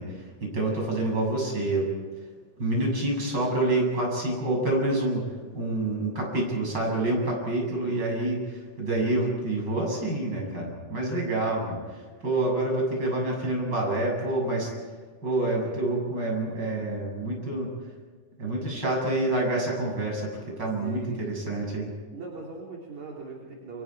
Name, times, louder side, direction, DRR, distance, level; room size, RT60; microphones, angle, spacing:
voice 1, 0.0-1.9 2.6-5.2 5.5-14.7 15.2-17.7 18.4-21.9, right 2 dB, 30° right, -1 dB, 7.7 m, -27 dB
voice 2, 20.8-21.2 22.1-23.8, right 3 dB, 50° right, -2 dB, 4.3 m, -39 dB
29.5 x 25.0 x 4.7 m, 1.5 s
omnidirectional pair, 4.1 m